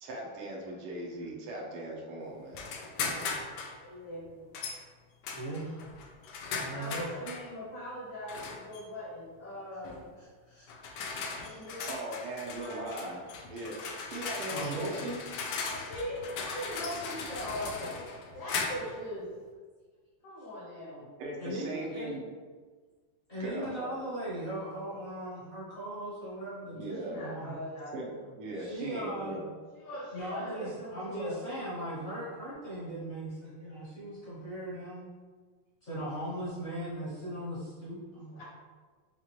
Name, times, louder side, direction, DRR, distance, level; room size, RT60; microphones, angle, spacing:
voice 1, 0.0-2.8 11.9-13.2 13.5-13.8 14.1-15.0 21.2-22.2 23.4-24.0 26.7-27.3 27.9-29.5, right 1 dB, 85° right, -2 dB, 1.8 m, -39 dB
sound 1, 2.5-3.8 4.5-4.8 5.2-7.5 8.3-8.8 9.8-10.1 10.7-19.0, left 4 dB, 80° left, 0.9 m, -38 dB
voice 2, 3.8-4.6 6.7-10.0 11.4-12.0 12.5-12.9 15.6-17.9 18.3-19.3 20.2-21.1 26.8-28.3 29.8-31.4 38.3-38.4, equal, 55° left, -5 dB, 1.5 m, -40 dB
voice 3, 5.3-5.8 6.5-7.0 10.5-10.7 11.0-11.6 14.5-15.2 21.4-22.1 23.3-27.6 28.5-29.3 30.1-35.1 35.8-38.4, right 1 dB, 40° left, -9 dB, 1.0 m, -38 dB
5.7 x 2.5 x 3.0 m, 1.5 s
omnidirectional pair, 2.4 m